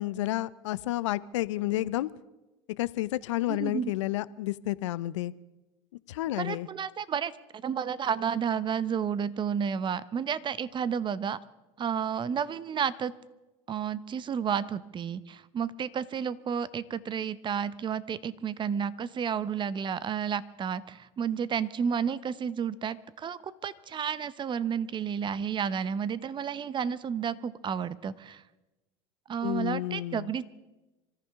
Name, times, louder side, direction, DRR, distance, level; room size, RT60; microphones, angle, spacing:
voice 1, 0.0-2.1 2.8-5.3 6.1-6.7 29.4-30.4, left 16 dB, 90° left, 0.5 m, -31 dB
voice 2, 3.5-3.9 6.4-11.4 11.8-13.1 13.7-28.4 29.3-30.4, right 7 dB, 30° right, 0.9 m, -31 dB
26.0 x 14.0 x 3.6 m
supercardioid pair, 100°, 15 cm